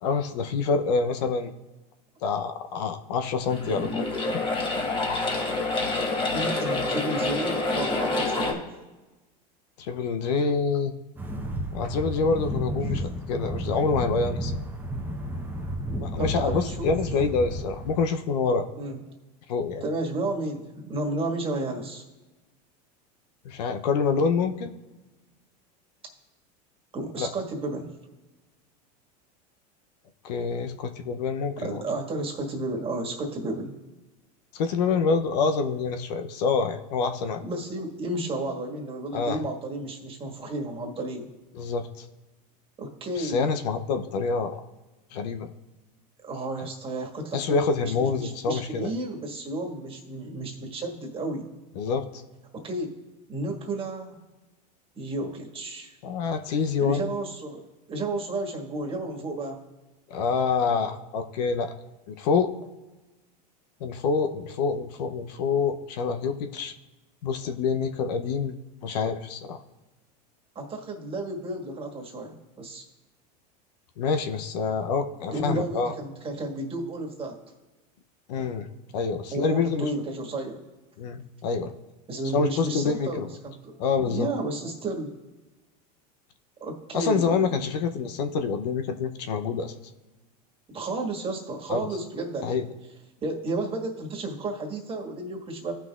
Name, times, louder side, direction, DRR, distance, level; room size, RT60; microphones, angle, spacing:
voice 1, 0.0-1.5 2.2-4.1 9.8-10.9 11.7-14.5 16.0-18.7 19.5-19.8 23.4-24.7 27.2-27.3 30.2-31.8 34.5-37.4 39.1-39.4 41.5-42.0 43.2-44.6 45.1-45.5 47.3-48.9 51.8-52.1 56.0-57.1 60.1-61.7 62.1-62.5 63.8-66.7 67.2-68.5 68.8-69.6 74.0-75.9 78.3-78.7 78.9-79.9 81.0-81.7 82.3-83.3 83.8-84.3 86.9-89.7 91.7-91.9 92.4-92.6, left 5 dB, 75° left, 8 dB, 0.7 m, -26 dB
sound 1, 3.4-8.5, left 3 dB, 25° left, 1.4 m, -27 dB
voice 2, 6.3-8.7 16.2-17.0 18.7-19.0 19.8-22.0 26.9-27.9 31.6-33.7 37.4-41.3 42.8-43.4 46.2-51.5 52.5-52.9 53.3-54.2 54.9-55.9 56.8-57.6 57.9-59.6 70.5-72.8 75.3-77.3 79.3-80.6 82.1-83.8 84.0-85.1 86.6-87.4 90.7-92.6 93.2-95.7, right 2 dB, 25° right, 0 dB, 1.7 m, -32 dB
sound 2, 11.2-18.1, equal, 10° right, 0.8 m, -32 dB
15.0 x 5.8 x 2.4 m, 1.1 s
supercardioid pair, 115°, 21 cm